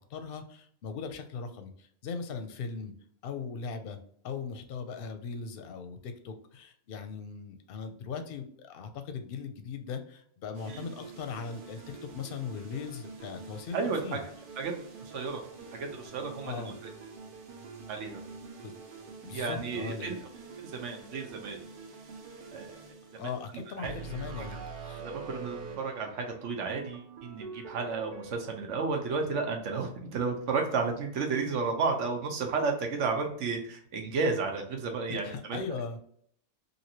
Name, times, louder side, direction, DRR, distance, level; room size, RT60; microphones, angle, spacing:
voice 1, 0.1-2.9 3.2-4.0 4.2-14.2 16.4-16.8 18.6-18.7 19.2-20.2 23.1-25.0 35.1-36.0, left 5 dB, 60° left, 7 dB, 0.7 m, -39 dB
sound 1, 10.5-28.3, right 4 dB, 55° right, 0.7 m, -46 dB
voice 2, 13.7-14.2 14.6-14.7 15.1-15.4 15.8-16.7 17.9-18.2 19.3-20.2 20.6-21.6 22.5-22.7 23.8-23.9 24.4-24.6 25.0-35.6, right 4 dB, 80° right, 3 dB, 1.1 m, -32 dB
3.0 x 2.6 x 2.7 m, 0.63 s
omnidirectional pair, 1.2 m